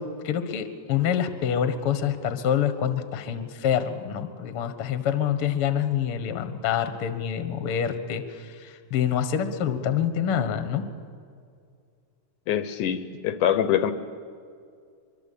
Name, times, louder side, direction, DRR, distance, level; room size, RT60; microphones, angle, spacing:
voice 1, 0.0-10.9, left 9 dB, 50° left, 9 dB, 1.9 m, -26 dB
voice 2, 12.5-13.9, left 10 dB, 75° left, 11 dB, 2.3 m, -24 dB
24.0 x 23.5 x 8.6 m, 2.3 s
omnidirectional pair, 3.8 m